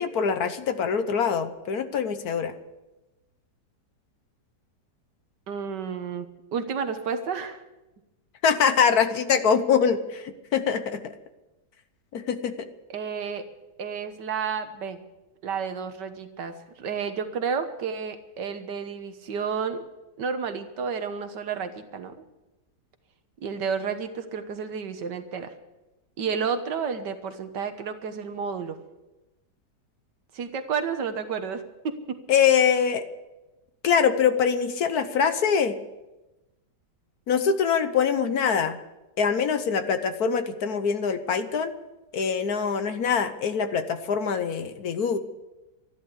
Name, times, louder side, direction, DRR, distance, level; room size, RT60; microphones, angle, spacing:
voice 1, 0.0-2.5 8.4-11.1 12.1-12.5 32.3-33.0 33.8-35.8 37.3-38.8 39.2-41.7 42.1-45.2, left 6 dB, 60° left, 10 dB, 1.4 m, -24 dB
voice 2, 5.5-6.3 6.5-7.6 12.9-13.5 13.8-15.0 15.4-19.8 20.2-22.2 23.4-25.5 26.2-28.8 30.3-32.2, right 6 dB, 80° right, 9 dB, 1.8 m, -31 dB
13.5 x 11.5 x 8.3 m, 1.0 s
omnidirectional pair, 1.9 m